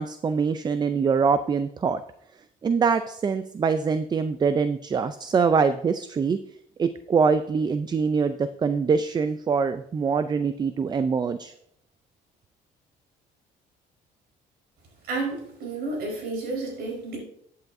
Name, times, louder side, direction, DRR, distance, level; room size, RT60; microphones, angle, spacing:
voice 1, 0.0-2.0 2.6-6.4 6.8-11.5, right 5 dB, 25° right, 11 dB, 0.4 m, -24 dB
voice 2, 15.1-17.2, right 3 dB, 70° right, -1 dB, 4.3 m, -31 dB
12.0 x 8.3 x 2.6 m, 0.69 s
cardioid pair, 110°, 17 cm